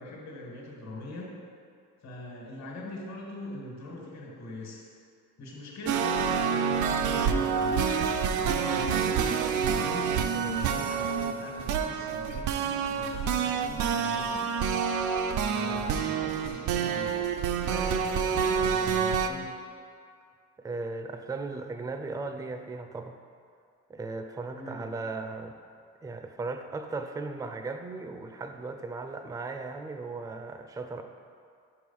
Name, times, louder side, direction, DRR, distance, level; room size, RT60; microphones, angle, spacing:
voice 1, 0.0-1.4 2.0-4.9 5.4-10.2 10.4-14.5 15.3-17.2 17.6-19.5 24.5-24.9, left 1 dB, 65° left, -2 dB, 1.4 m, -42 dB
sound 1, 5.9-19.3, right 6 dB, 80° right, 0.5 m, -28 dB
voice 2, 20.6-23.2 23.9-25.6 26.0-31.0, right 3 dB, 10° right, 6 dB, 0.3 m, -37 dB
5.3 x 4.8 x 5.4 m, 2.2 s
cardioid pair, 90°, 30 cm